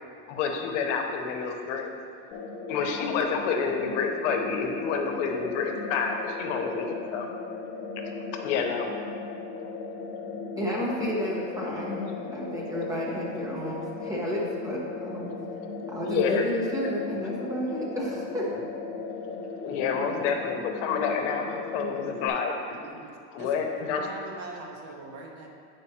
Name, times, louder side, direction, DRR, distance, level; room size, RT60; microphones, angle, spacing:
voice 1, 0.3-1.9 2.7-7.3 8.0-8.1 8.3-8.9 16.0-16.4 19.6-22.8 23.3-24.1 24.3-24.4, left 6 dB, 75° left, 3 dB, 0.9 m, -29 dB
sound 1, 2.3-22.3, left 4 dB, 40° left, 0.6 m, -37 dB
voice 2, 10.6-12.0 12.3-15.3 15.9-18.5, equal, 10° right, -4 dB, 1.1 m, -31 dB
voice 3, 22.8-23.6 24.0-25.5, right 3 dB, 45° right, 1 dB, 0.9 m, -42 dB
8.6 x 5.1 x 2.9 m, 2.4 s
supercardioid pair, 145°, 37 cm